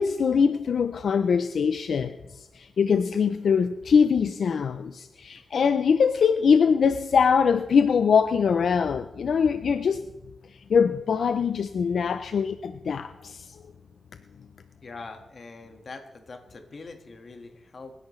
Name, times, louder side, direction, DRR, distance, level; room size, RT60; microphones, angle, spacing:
voice 1, 0.0-10.1 10.5-13.6, left 6 dB, 75° left, 11 dB, 0.4 m, -23 dB
voice 2, 14.8-17.9, left 3 dB, 50° left, 6 dB, 1.6 m, -43 dB
27.0 x 11.0 x 3.2 m, 1.0 s
wide cardioid pair, 110°, 0 cm